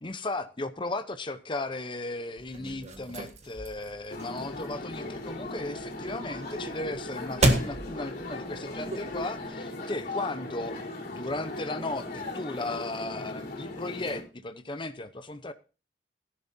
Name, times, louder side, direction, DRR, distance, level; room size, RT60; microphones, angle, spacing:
voice 1, 0.0-10.8 11.1-15.5, left 2 dB, 25° left, 0.8 m, -36 dB
sound 1, 2.4-9.4, right 1 dB, 40° right, 1.5 m, -33 dB
sound 2, 4.1-14.2, left 2 dB, 50° left, 4.1 m, -38 dB
16.5 x 11.0 x 2.7 m
head